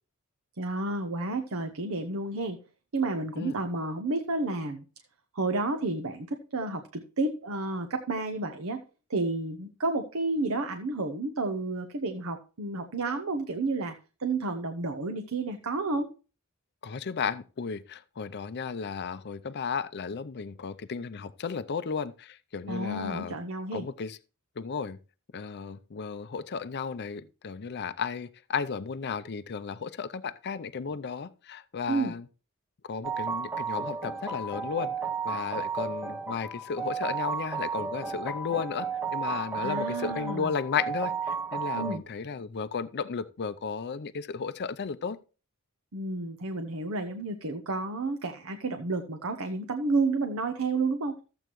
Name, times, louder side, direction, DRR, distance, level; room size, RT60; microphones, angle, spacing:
voice 1, 0.6-2.6 2.9-4.8 5.3-8.8 9.1-13.9 14.2-16.1 22.7-23.9 31.9-32.1 39.6-40.5 41.7-42.0 45.9-51.2, right 3 dB, 70° right, 0.9 m, -31 dB
voice 2, 16.8-23.3 23.7-24.2 24.6-25.0 25.3-32.2 32.8-34.9 35.2-45.2, left 6 dB, 50° left, 0.5 m, -34 dB
sound 1, 33.0-42.0, right 5 dB, 10° right, 0.8 m, -33 dB
14.0 x 7.8 x 3.1 m
head